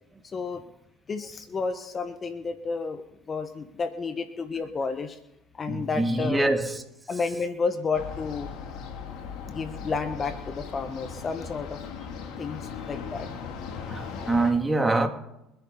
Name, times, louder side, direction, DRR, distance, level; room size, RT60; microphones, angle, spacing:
voice 1, 0.3-0.6 1.1-3.0 3.3-5.2 5.5-6.5 7.1-8.5 9.5-11.8 12.1-13.3, left 4 dB, 35° left, 1.4 m, -31 dB
voice 2, 5.7-6.8 13.9-15.1, right 2 dB, 15° right, 2.5 m, -24 dB
sound 1, 7.9-14.5, left 6 dB, 65° left, 2.8 m, -38 dB
25.5 x 10.5 x 4.1 m
supercardioid pair, 80°, 0 cm